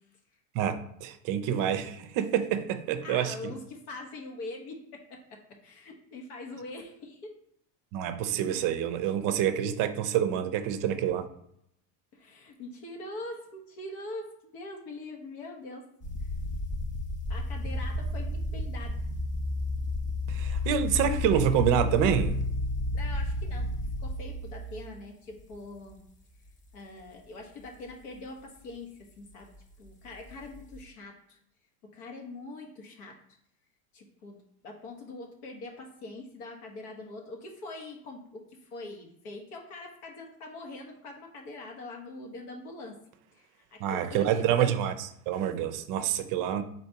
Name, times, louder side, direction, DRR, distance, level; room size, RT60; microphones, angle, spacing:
voice 1, 0.5-3.3 7.9-11.3 20.3-22.4 43.8-46.6, right 9 dB, 45° right, 0.5 m, -27 dB
voice 2, 3.0-7.4 12.1-15.9 16.2-16.3 17.3-19.1 22.9-23.7 24.0-26.0 26.7-29.5 29.8-31.4 31.8-33.2 33.9-43.0 43.3-44.4, left 2 dB, 85° left, 1.3 m, -43 dB
sound 1, 16.0-24.8 25.5-25.9 26.5-26.6 30.2-30.8, left 2 dB, 20° left, 0.4 m, -32 dB
4.2 x 2.7 x 4.5 m
supercardioid pair, 115°, 43 cm